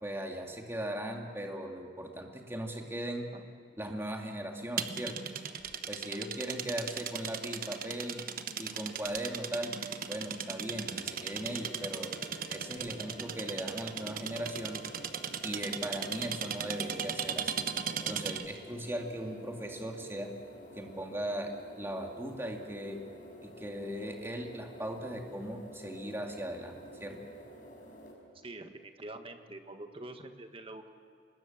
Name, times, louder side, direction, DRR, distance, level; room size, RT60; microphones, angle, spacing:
voice 1, 0.0-3.3 3.8-5.2 5.9-8.2 8.6-9.7 10.1-12.1 12.5-14.8 15.4-17.6 18.1-20.3 20.8-21.5 21.8-23.0 23.4-27.2, right 1 dB, 15° right, 2 dB, 2.3 m, -38 dB
sound 1, 4.8-18.6, right 7 dB, 55° right, 1.2 m, -37 dB
sound 2, 10.8-28.1, equal, 50° left, 5.6 m, -50 dB
voice 2, 28.4-30.9, right 2 dB, 30° right, 6 dB, 1.6 m, -45 dB
25.0 x 21.0 x 7.3 m, 2.4 s
head